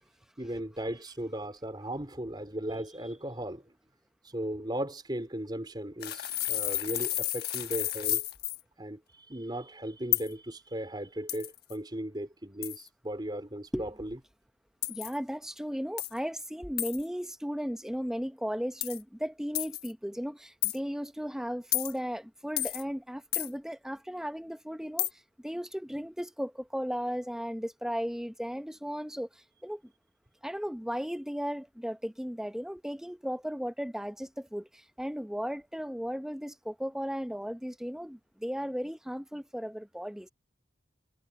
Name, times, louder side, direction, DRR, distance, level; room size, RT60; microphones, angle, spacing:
voice 1, 0.4-3.7 4.2-8.3 8.8-14.2, right 1 dB, 25° right, 4.2 m, -37 dB
sound 1, 6.0-8.6 10.1-10.3 11.3-11.8 12.6-12.9 14.8-15.1 16.0-16.2 16.8-17.0 18.8-19.0 19.5-19.9 20.6-20.8 21.7-21.9 22.6-22.8 23.3-23.5 25.0-25.1, left 15 dB, 55° left, 1.3 m, -31 dB
voice 2, 14.9-29.9 30.4-40.3, equal, 5° right, 0.9 m, -36 dB
head